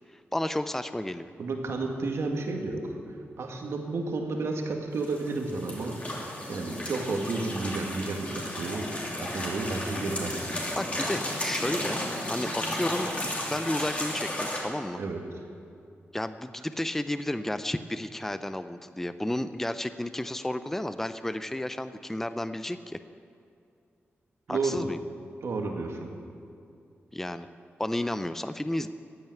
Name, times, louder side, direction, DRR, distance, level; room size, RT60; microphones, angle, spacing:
voice 1, 0.3-1.3 10.7-13.1 13.5-15.0 16.1-23.0 24.5-25.0 27.1-27.5 27.8-28.9, left 1 dB, 5° left, 11 dB, 0.5 m, -32 dB
voice 2, 1.4-10.6 15.0-15.4 24.5-24.9 25.4-26.1, right 3 dB, 75° right, 2 dB, 2.0 m, -32 dB
sound 1, 5.0-14.6, left 1 dB, 30° left, 2.9 m, -33 dB
14.5 x 9.1 x 9.1 m, 2.4 s
wide cardioid pair, 110°, 5 cm